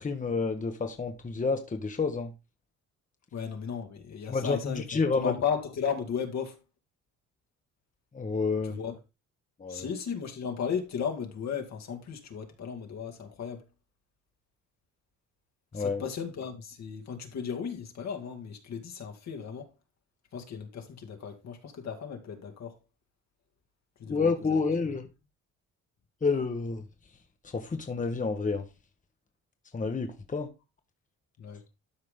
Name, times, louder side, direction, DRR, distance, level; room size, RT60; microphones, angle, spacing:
voice 1, 0.0-2.3 4.3-5.3 8.1-8.8 9.6-9.9 15.7-16.0 24.1-25.1 26.2-26.8 27.4-28.6 29.7-30.5, left 4 dB, 25° left, 1.3 m, -29 dB
voice 2, 3.3-4.8 5.1-6.6 8.7-9.0 9.7-13.6 15.7-19.7 20.3-22.7 24.0-24.6 31.4-31.6, left 7 dB, 60° left, 2.2 m, -35 dB
12.5 x 4.9 x 3.7 m
cardioid pair, 90°, 30 cm